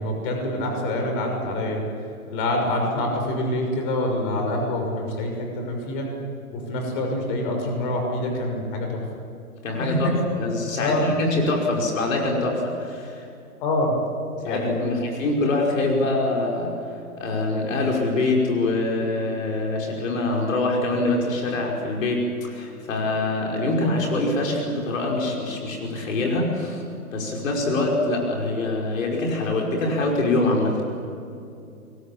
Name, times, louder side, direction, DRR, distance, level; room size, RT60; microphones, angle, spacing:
voice 1, 0.0-1.8 2.3-6.1 6.5-9.0 9.8-10.1 10.8-11.0 13.6-13.9 14.4-15.0, left 1 dB, 35° left, 2 dB, 6.1 m, -26 dB
voice 2, 9.6-13.3 14.5-16.8 17.2-26.8 27.1-30.8, left 2 dB, 60° left, -1 dB, 5.7 m, -24 dB
26.5 x 22.5 x 8.7 m, 2.5 s
hypercardioid pair, 140°, 44 cm